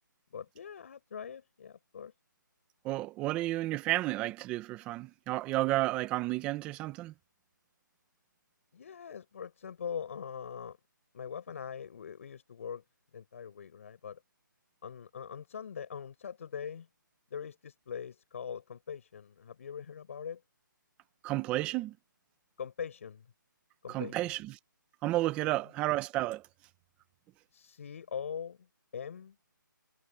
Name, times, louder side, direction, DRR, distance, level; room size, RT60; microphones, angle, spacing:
voice 1, 0.3-2.1 8.7-10.8 11.1-12.8 13.1-14.2 14.8-16.9 17.3-20.4 22.6-23.3 23.8-24.3 25.4-25.6 27.5-28.7 28.9-29.4, left 7 dB, 40° left, 6.3 m, -42 dB
voice 2, 2.8-7.1 21.2-21.9 23.9-24.5 25.0-26.4, right 17 dB, 10° right, 1.2 m, -32 dB
hypercardioid pair, 170°, 11 cm